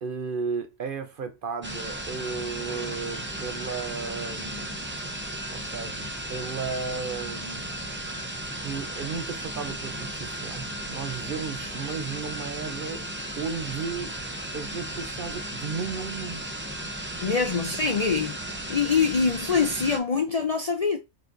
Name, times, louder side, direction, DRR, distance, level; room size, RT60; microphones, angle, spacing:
voice 1, 0.0-4.7 5.5-7.7 8.6-13.1 13.4-14.2 14.5-16.4, right 5 dB, 55° right, 0.7 m, -34 dB
sound 1, 1.6-20.0, right 1 dB, 15° right, 0.5 m, -35 dB
voice 2, 17.2-18.4 18.7-21.0, left 5 dB, 45° left, 0.5 m, -24 dB
4.8 x 4.1 x 2.6 m
omnidirectional pair, 1.2 m